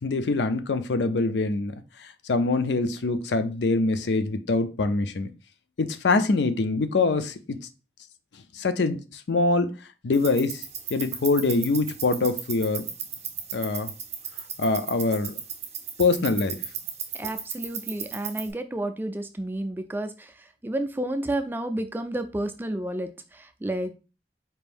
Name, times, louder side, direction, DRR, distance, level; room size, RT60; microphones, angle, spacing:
voice 1, 0.0-5.3 5.8-7.6 8.5-9.7 10.0-10.6 10.9-12.9 13.5-13.9 14.6-15.4 16.0-16.6, left 3 dB, 80° left, 10 dB, 0.5 m, -24 dB
sound 1, 10.1-18.5, right 8 dB, 40° right, 0.8 m, -36 dB
voice 2, 17.2-20.3 20.6-23.9, right 1 dB, 10° right, 8 dB, 0.3 m, -31 dB
4.4 x 2.6 x 3.4 m, 0.32 s
head